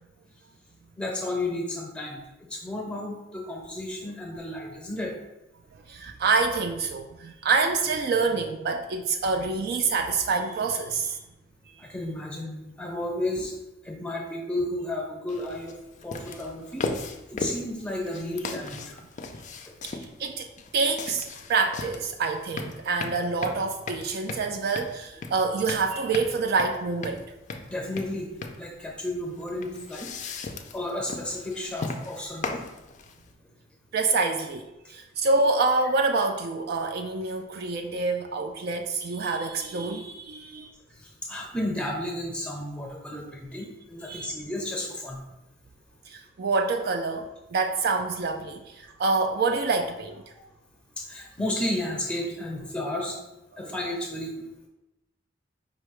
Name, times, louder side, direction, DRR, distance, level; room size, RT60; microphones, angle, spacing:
voice 1, 1.0-5.1 11.8-13.6 13.8-15.7 16.0-16.9 17.3-19.0 27.7-28.3 28.6-30.1 30.7-32.6 41.0-45.2 50.3-50.4 51.0-53.2 53.6-54.7, left 1 dB, 5° left, 0 dB, 0.7 m, -32 dB
voice 2, 5.9-11.2 19.8-20.5 20.7-27.2 33.9-40.7 44.0-44.3 46.1-50.2 53.7-53.8, right 4 dB, 50° right, 6 dB, 0.3 m, -27 dB
sound 1, 15.3-33.3, left 3 dB, 35° left, 0.4 m, -37 dB
5.0 x 2.2 x 4.7 m, 0.95 s
head